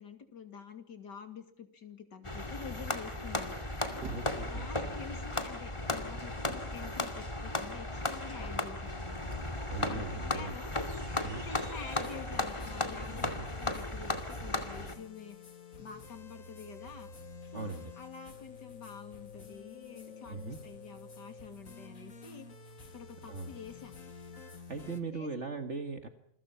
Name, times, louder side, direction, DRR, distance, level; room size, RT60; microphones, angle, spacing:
voice 1, 0.0-3.6 3.9-4.1 4.4-9.3 9.9-10.7 11.3-15.4 15.8-17.1 17.5-22.4 22.9-23.9 25.1-25.3, left 6 dB, 85° left, 7 dB, 3.2 m, -48 dB
sound 1, 2.2-15.0, left 2 dB, 15° left, 2.3 m, -36 dB
sound 2, 3.5-4.9 8.9-12.2, right 4 dB, 75° right, 2.5 m, -50 dB
voice 2, 4.1-4.7 9.7-10.5 11.2-11.4 13.2-13.5 17.5-17.9 20.3-20.6 23.2-23.5 24.5-26.1, right 4 dB, 45° right, 7 dB, 1.9 m, -40 dB
sound 3, 11.6-25.0, left 4 dB, 50° left, 2.3 m, -50 dB
28.0 x 22.5 x 5.6 m, 0.75 s
omnidirectional pair, 1.8 m